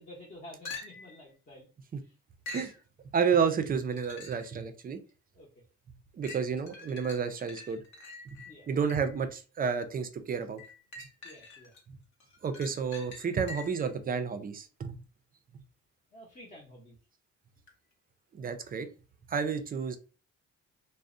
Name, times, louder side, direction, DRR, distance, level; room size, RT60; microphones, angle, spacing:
voice 1, 0.0-2.2 5.3-5.6 8.4-8.7 11.2-11.7 16.1-17.0, left 1 dB, 30° left, -5 dB, 0.7 m, -51 dB
sound 1, 0.7-1.2 2.5-2.8 3.8-4.5 5.1-5.2 6.2-9.2 10.6-11.8 12.2-13.9 17.7-17.8, left 3 dB, 70° left, 0.8 m, -46 dB
voice 2, 3.1-5.0 6.2-7.8 8.7-10.6 12.4-15.0 18.4-18.9 19.3-20.0, right 6 dB, 30° right, 9 dB, 0.4 m, -30 dB
2.5 x 2.0 x 2.4 m, 0.35 s
cardioid pair, 90°, 30 cm